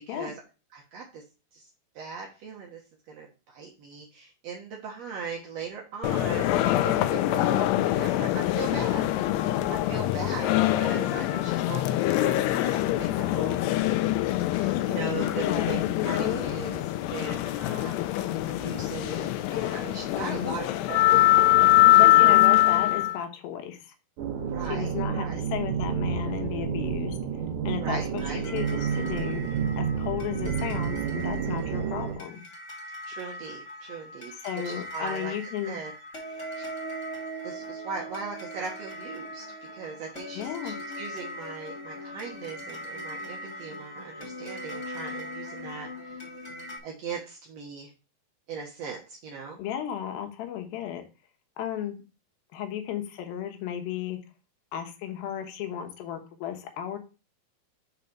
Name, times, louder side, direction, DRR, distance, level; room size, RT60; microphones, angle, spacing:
voice 1, 0.7-1.2 1.5-1.7 1.9-2.8 3.1-9.0 9.7-13.7 14.5-22.6 24.4-25.4 27.8-28.4 33.0-35.3 35.6-35.9 36.5-36.6 37.4-39.5 39.7-46.2 46.8-47.9 48.5-49.6, right 5 dB, 85° right, -1 dB, 1.4 m, -39 dB
sound 1, 6.0-23.2, left 15 dB, 85° left, 2.6 m, -23 dB
voice 2, 15.4-15.8 20.1-20.5 21.9-23.9 24.6-27.2 27.6-32.4 34.3-35.8 40.3-40.8 49.6-51.0 51.6-52.0 52.5-54.2 54.7-57.0, left 10 dB, 70° left, 5 dB, 2.7 m, -34 dB
sound 2, 24.2-32.1, right 7 dB, 65° right, 2.3 m, -30 dB
sound 3, 28.2-46.8, equal, 25° left, 1.7 m, -40 dB
6.4 x 4.0 x 5.9 m, 0.32 s
omnidirectional pair, 4.7 m